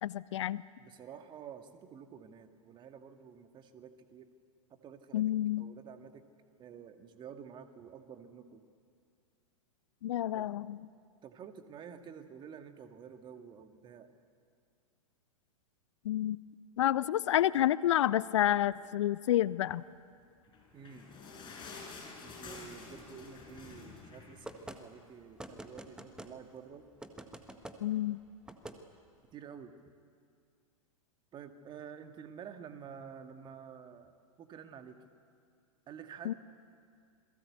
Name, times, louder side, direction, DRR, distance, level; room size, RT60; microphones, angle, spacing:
voice 1, 0.0-0.6 5.1-5.6 10.0-10.8 16.0-16.4 16.8-19.8 27.8-28.2 36.3-36.4, left 12 dB, 55° left, 19 dB, 0.6 m, -29 dB
voice 2, 0.8-4.3 4.7-6.3 6.6-8.7 10.3-10.5 11.2-14.1 20.7-21.2 22.2-26.9 29.3-29.7 31.3-34.1 34.4-35.1 35.9-36.3, right 7 dB, 25° right, 7 dB, 2.0 m, -50 dB
sound 1, 20.4-25.1 25.5-25.6 25.9-26.1 26.7-26.8, left 4 dB, 25° left, 6.4 m, -49 dB
sound 2, 24.4-24.8 25.4-26.3 27.0-27.8 28.5-28.8, right 1 dB, 5° right, 1.7 m, -46 dB
28.0 x 22.0 x 8.3 m, 2.2 s
figure-of-eight pair, 100°, 18 cm